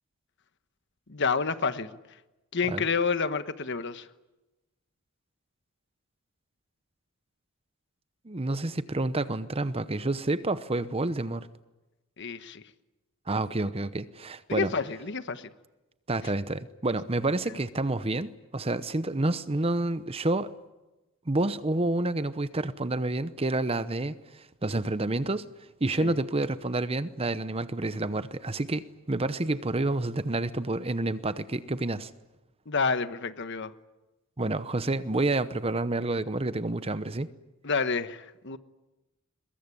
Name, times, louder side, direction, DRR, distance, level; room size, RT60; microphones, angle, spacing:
voice 1, 1.1-2.0 2.5-4.1 12.2-12.6 14.5-15.5 26.0-26.1 32.7-33.7 37.6-38.6, left 5 dB, 55° left, 1.2 m, -29 dB
voice 2, 8.2-11.5 13.3-14.7 16.1-20.5 21.3-25.5 25.8-32.1 34.4-37.3, right 2 dB, 25° right, 0.8 m, -29 dB
23.0 x 22.0 x 9.9 m
head